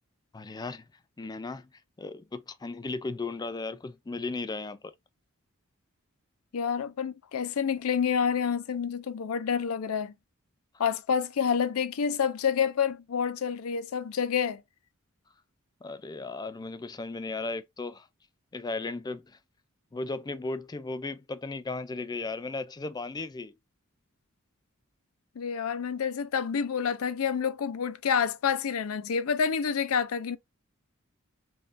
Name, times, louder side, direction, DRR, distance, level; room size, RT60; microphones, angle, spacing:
voice 1, 0.3-0.8 1.2-1.7 2.0-4.9 15.8-18.1 18.5-19.4 19.9-23.6, left 3 dB, 20° left, 0.4 m, -36 dB
voice 2, 6.5-10.1 10.8-14.6 25.4-30.4, left 7 dB, 80° left, 0.4 m, -28 dB
5.4 x 2.3 x 2.5 m
head